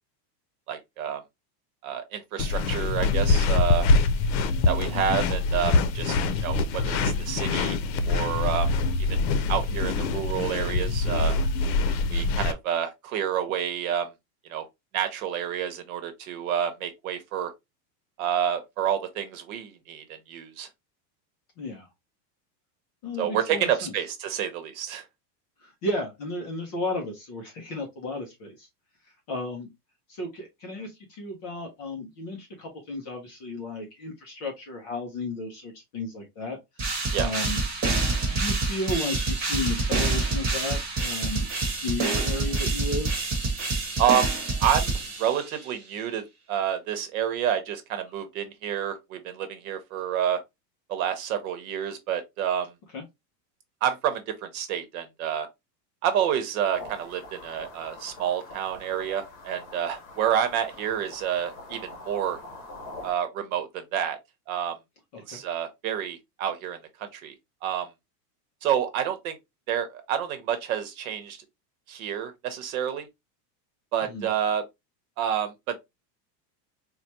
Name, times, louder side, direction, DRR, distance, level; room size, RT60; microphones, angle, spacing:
voice 1, 0.7-1.2 1.8-3.9 4.7-6.2 6.4-7.8 8.1-8.7 9.0-9.2 9.5-11.4 12.1-14.1 14.5-14.6 14.9-17.5 18.2-20.7 23.2-25.0 37.1-37.3 44.0-44.3 44.6-50.4 50.9-52.7 53.8-55.5 56.0-62.4 63.0-64.2 64.5-64.8 65.3-67.3 67.6-67.9 68.6-69.4 69.7-71.4 71.9-73.1 73.9-74.6 75.2-75.8, right 9 dB, 60° right, 1.0 m, -29 dB
sound 1, 2.4-12.5, left 3 dB, 80° left, 0.7 m, -24 dB
voice 2, 21.6-21.9 23.0-23.9 25.6-28.7 29.3-29.7 30.1-36.9 37.2-37.6 38.3-41.5 41.8-43.2 52.9-53.0 65.1-65.4 74.0-74.3, left 2 dB, 25° left, 0.5 m, -34 dB
sound 2, 36.8-45.6, right 3 dB, 15° right, 1.1 m, -27 dB
sound 3, 56.7-63.1, left 2 dB, 40° left, 1.6 m, -44 dB
4.5 x 2.2 x 2.7 m
supercardioid pair, 180°, 50 cm